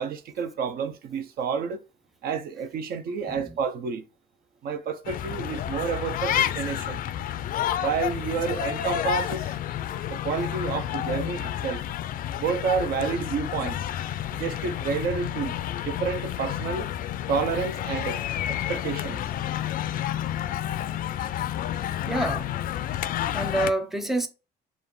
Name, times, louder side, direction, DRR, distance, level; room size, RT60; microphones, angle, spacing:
voice 1, 0.0-1.8 2.2-4.0 4.6-7.0 7.8-9.5 10.1-11.8 12.4-13.8 14.3-15.6 15.8-16.9 17.3-18.2 18.5-19.2, right 6 dB, 65° right, 0.7 m, -29 dB
sound 1, 5.0-23.7, left 11 dB, 55° left, 0.4 m, -30 dB
voice 2, 22.1-22.5 23.3-24.3, right 2 dB, ahead, 0.7 m, -27 dB
5.4 x 2.4 x 3.8 m
cardioid pair, 110°, 17 cm